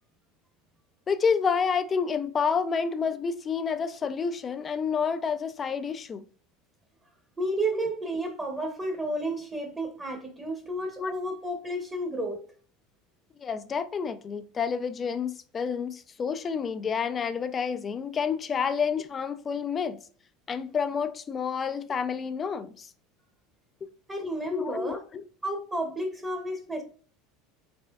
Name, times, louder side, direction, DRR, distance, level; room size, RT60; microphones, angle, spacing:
voice 1, 1.1-6.2 7.7-7.8 11.0-11.1 13.4-20.0 20.5-22.9 23.8-23.9 24.5-25.2, left 6 dB, 30° left, 0.4 m, -29 dB
voice 2, 7.4-12.4 24.1-25.0 25.4-26.8, right 1 dB, 15° right, 1.0 m, -31 dB
4.3 x 4.2 x 2.3 m
supercardioid pair, 105°, 0 cm